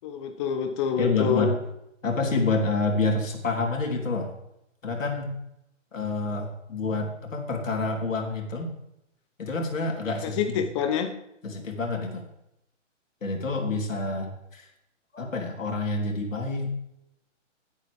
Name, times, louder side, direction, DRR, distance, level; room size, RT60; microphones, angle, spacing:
voice 1, 0.0-1.6 10.2-11.1, left 7 dB, 25° left, 6 dB, 0.7 m, -27 dB
voice 2, 1.0-1.6 2.0-4.3 4.8-5.3 5.9-8.7 9.4-10.6 11.4-12.2 13.2-14.7 15.1-16.7, left 3 dB, 85° left, 1 dB, 3.6 m, -28 dB
17.0 x 8.4 x 3.5 m, 0.83 s
hypercardioid pair, 145°, 38 cm